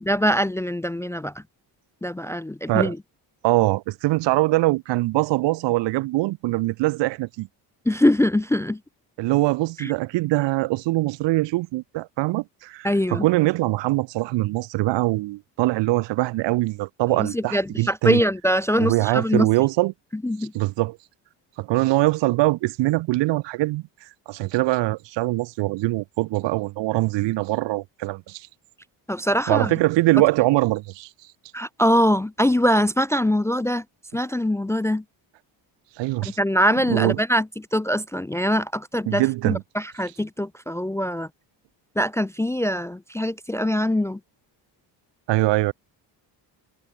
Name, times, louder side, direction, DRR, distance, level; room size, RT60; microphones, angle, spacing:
voice 1, 0.0-1.3 2.0-3.0 7.9-8.8 9.8-9.9 12.8-13.3 17.2-19.5 20.2-20.5 29.1-29.7 31.5-33.8 34.1-35.0 36.2-41.3 42.0-44.2, equal, 5° left, 0.4 m, -23 dB
voice 2, 3.4-7.5 9.2-18.2 18.8-19.9 20.5-21.0 21.6-23.8 24.3-28.5 29.5-31.1 36.0-36.4 36.9-37.2 39.1-39.6 45.3-45.7, right 19 dB, 80° right, 0.8 m, -22 dB
cardioid pair, 125°, 43 cm